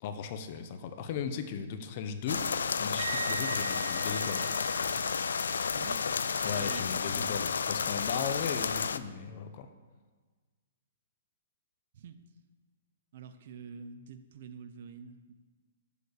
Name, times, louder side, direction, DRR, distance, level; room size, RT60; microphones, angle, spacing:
voice 1, 0.0-2.5 2.8-4.5 6.4-9.7, left 7 dB, 45° left, 8 dB, 0.9 m, -37 dB
sound 1, 2.3-9.0, left 6 dB, 85° left, 0.4 m, -31 dB
Wind instrument woodwind instrument, 3.0-6.8, right 6 dB, 80° right, 0.3 m, -41 dB
voice 2, 5.7-7.5 11.9-12.2 13.1-15.3, right 5 dB, 55° right, 10 dB, 0.8 m, -47 dB
7.0 x 6.8 x 6.6 m, 1.4 s
hypercardioid pair, 140°, 0 cm